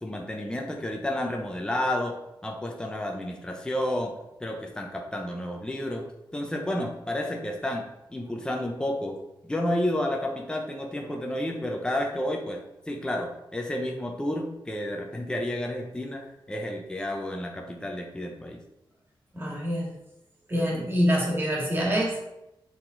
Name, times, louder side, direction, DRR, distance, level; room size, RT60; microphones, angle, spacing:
voice 1, 0.0-2.2 2.4-4.1 4.4-6.1 6.3-7.8 8.1-9.2 9.4-12.6 12.9-18.6, left 1 dB, 10° left, 1 dB, 0.8 m, -31 dB
voice 2, 19.3-19.9 20.5-22.2, equal, 25° right, -3 dB, 2.1 m, -25 dB
7.2 x 3.9 x 4.0 m, 0.89 s
wide cardioid pair, 130°, 9 cm